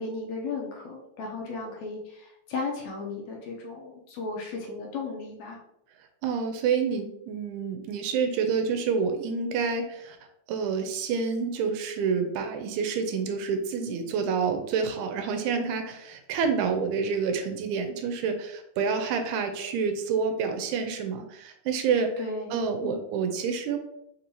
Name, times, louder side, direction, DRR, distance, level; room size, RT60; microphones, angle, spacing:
voice 1, 0.0-5.6 22.2-23.0, left 3 dB, 75° left, -1 dB, 1.9 m, -35 dB
voice 2, 6.2-10.2 10.5-22.2 22.5-23.8, right 5 dB, 80° right, 6 dB, 1.9 m, -28 dB
5.4 x 2.7 x 2.9 m, 0.77 s
omnidirectional pair, 3.5 m